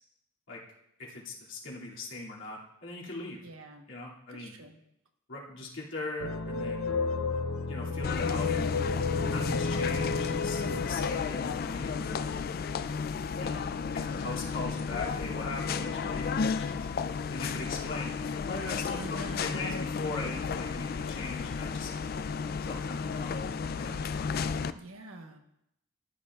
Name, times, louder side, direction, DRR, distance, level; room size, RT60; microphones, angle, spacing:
voice 1, 1.0-3.4 3.9-4.5 5.3-6.9 7.7-8.7 9.1-12.3 13.4-13.7 13.9-21.9 22.6-23.9, left 2 dB, 65° left, -5 dB, 2.5 m, -40 dB
voice 2, 3.4-3.9 4.3-4.8 19.0-19.5 24.7-25.4, right 2 dB, 80° right, 4 dB, 1.2 m, -46 dB
sound 1, 6.2-12.4, left 4 dB, 80° left, 0.7 m, -32 dB
sound 2, 8.0-24.7, left 5 dB, 45° left, 0.3 m, -33 dB
14.5 x 9.9 x 2.4 m, 0.80 s
head